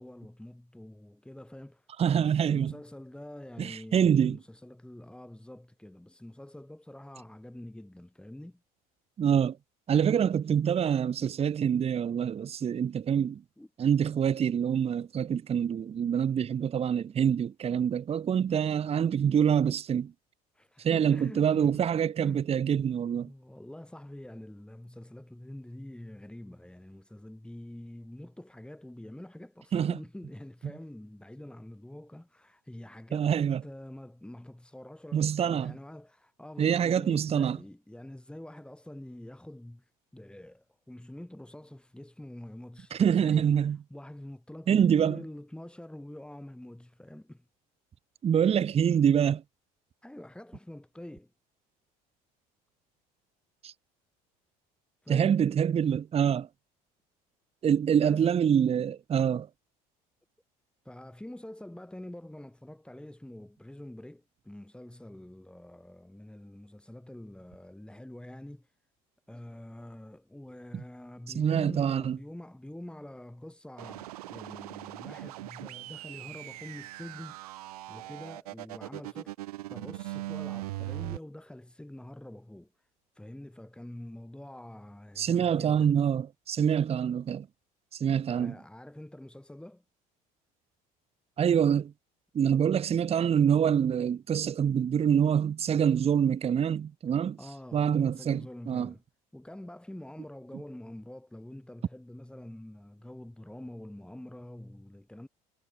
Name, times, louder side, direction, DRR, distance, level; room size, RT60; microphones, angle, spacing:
voice 1, 0.0-8.6 11.2-11.3 13.6-13.7 20.5-21.8 22.2-22.5 23.3-33.3 33.6-47.4 50.0-51.3 55.0-55.5 57.9-58.3 60.8-68.7 69.3-77.4 77.9-79.3 79.7-82.9 83.1-86.0 88.3-89.8 97.4-99.0 99.3-105.3, left 1 dB, 5° left, 6.1 m, -46 dB
voice 2, 2.0-2.7 3.6-4.4 9.2-9.6 9.9-13.4 13.8-20.1 20.8-23.3 29.7-30.0 33.1-33.6 35.1-35.7 36.6-37.6 42.9-43.8 44.7-45.2 48.2-49.4 53.6-53.7 55.1-56.5 57.6-59.5 70.7-70.8 71.3-72.2 85.2-87.5 87.9-88.6 91.4-91.9 92.3-97.4 97.7-98.9, right 8 dB, 30° right, 0.8 m, -26 dB
sound 1, 73.8-81.2, right 17 dB, 90° right, 1.2 m, -40 dB
hypercardioid pair, 80°, 19 cm